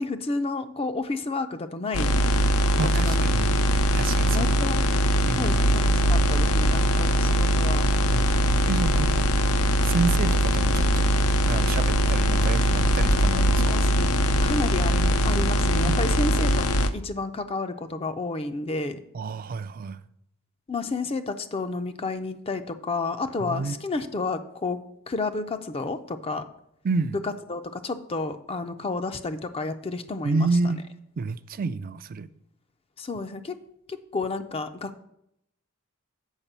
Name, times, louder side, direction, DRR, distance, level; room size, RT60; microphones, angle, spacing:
voice 1, 0.0-2.2 2.8-3.5 4.3-4.8 5.3-7.9 13.6-14.2 14.4-16.7 16.9-19.0 20.7-24.8 25.1-26.5 27.2-30.5 33.0-33.6 33.9-35.0, left 3 dB, 25° left, 0.4 m, -31 dB
sound 1, 1.9-16.9, equal, 80° left, 0.6 m, -21 dB
voice 2, 2.8-3.5 3.9-4.5 5.3-5.8 8.1-11.1 11.4-13.6 15.6-16.0 19.1-20.0 23.4-23.8 26.8-27.2 30.2-30.8 31.2-32.3, right 4 dB, 40° right, 0.4 m, -29 dB
7.3 x 5.0 x 6.7 m
head